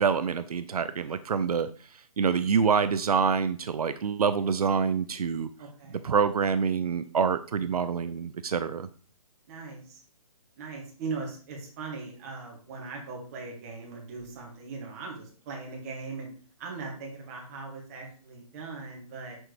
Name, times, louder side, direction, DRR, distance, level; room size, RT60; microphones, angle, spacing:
voice 1, 0.0-1.7 2.2-5.5 5.9-8.9, right 6 dB, 85° right, 12 dB, 0.5 m, -26 dB
voice 2, 5.6-6.0 9.5-10.0 10.6-16.3 16.6-19.4, right 4 dB, 25° right, 0 dB, 1.9 m, -39 dB
6.3 x 4.3 x 4.9 m, 0.42 s
hypercardioid pair, 160°, 19 cm